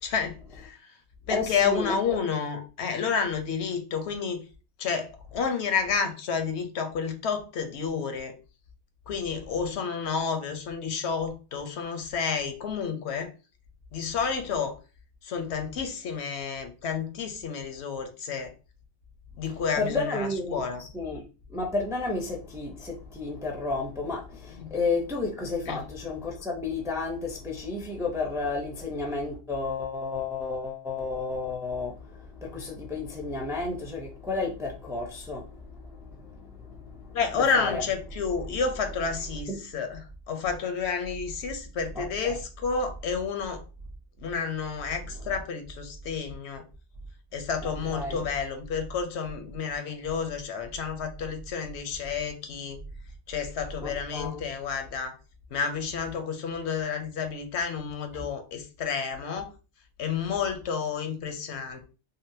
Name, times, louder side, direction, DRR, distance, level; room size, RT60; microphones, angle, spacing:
voice 1, 0.0-0.8 1.3-4.4 4.8-8.3 9.1-13.3 13.9-14.7 15.2-18.5 19.4-20.9 24.6-24.7 25.7-25.8 37.1-43.6 44.2-46.6 47.3-52.8 53.3-55.1 55.5-59.5 60.0-61.9, left 6 dB, 80° left, 0.9 m, -30 dB
voice 2, 1.3-2.2 19.8-20.6 20.9-21.2 21.5-37.8 39.5-39.6 42.0-42.4 47.6-48.2 53.8-54.4, left 3 dB, 5° right, 0.4 m, -32 dB
3.7 x 2.0 x 2.6 m
omnidirectional pair, 1.1 m